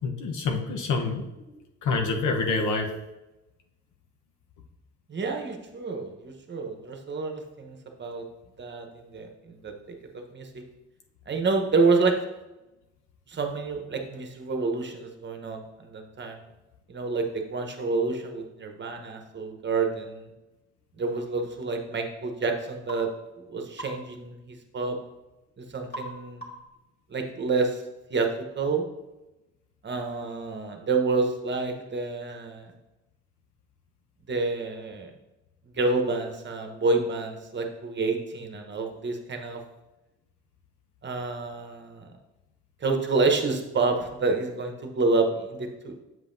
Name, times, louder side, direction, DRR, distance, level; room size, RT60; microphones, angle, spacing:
voice 1, 0.0-1.3 1.8-2.9, left 4 dB, 80° left, 3 dB, 1.0 m, -26 dB
voice 2, 5.1-8.2 8.6-9.7 10.3-10.6 11.3-12.1 13.3-16.4 16.9-20.3 21.0-23.1 23.5-25.0 25.6-26.4 27.1-27.8 28.1-28.3 28.6-28.9 29.8-32.7 34.3-35.1 35.6-39.6 41.0-42.1 42.8-46.0, right 3 dB, 35° right, 4 dB, 1.0 m, -28 dB
sound 1, 22.9-23.1 23.8-24.0 25.9-26.1 26.4-26.7, equal, 30° left, 2.0 m, -38 dB
7.7 x 5.5 x 2.7 m, 0.99 s
cardioid pair, 90°, 30 cm